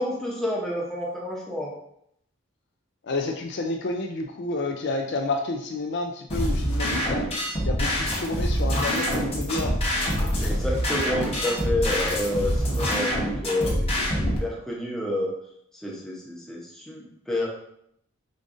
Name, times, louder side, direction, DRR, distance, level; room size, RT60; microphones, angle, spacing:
voice 1, 0.0-1.7 10.4-15.3 15.8-17.5, left 1 dB, ahead, -4 dB, 0.8 m, -29 dB
voice 2, 3.0-7.3 7.7-9.8, left 2 dB, 55° left, 3 dB, 0.4 m, -30 dB
sound 1, 6.3-14.4, equal, 25° left, 1.0 m, -25 dB
5.1 x 3.6 x 2.5 m, 0.73 s
head